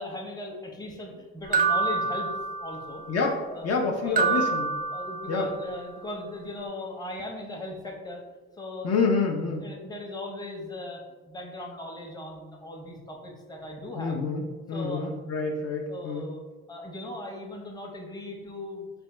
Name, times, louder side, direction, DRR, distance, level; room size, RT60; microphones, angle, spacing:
voice 1, 0.0-2.3 2.6-3.0 3.5-4.5 4.9-8.2 8.6-8.9 9.6-14.2 14.7-15.1 15.5-15.6 15.9-16.4 16.7-18.9, left 1 dB, 15° left, 0 dB, 0.7 m, -38 dB
sound 1, 1.5-3.0 4.2-5.6, right 5 dB, 30° right, 0.4 m, -27 dB
voice 2, 3.1-3.4 3.6-4.7 5.3-5.5 8.8-9.7 14.0-16.3, left 4 dB, 55° left, 1 dB, 0.5 m, -27 dB
3.3 x 2.1 x 4.2 m, 1.2 s
cardioid pair, 90°, 30 cm